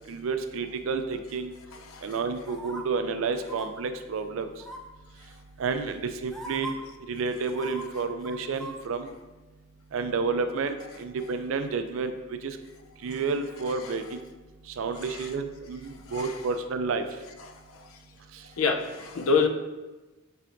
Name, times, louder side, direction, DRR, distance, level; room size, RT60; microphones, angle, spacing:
voice 1, 0.1-1.5 2.0-4.5 5.6-6.8 7.1-9.1 9.9-12.1 12.4-12.6 13.0-14.2 14.8-17.0, right 4 dB, 70° right, 8 dB, 0.4 m, -30 dB
sound 1, 2.5-2.8 3.4-3.7 4.6-5.0 5.9-6.0 6.3-6.7 7.5-8.8 9.1-9.2, right 2 dB, ahead, 0.4 m, -40 dB
voice 2, 17.4-17.8 18.6-19.5, left 5 dB, 80° left, 5 dB, 0.5 m, -27 dB
5.8 x 3.3 x 2.5 m, 1.1 s
head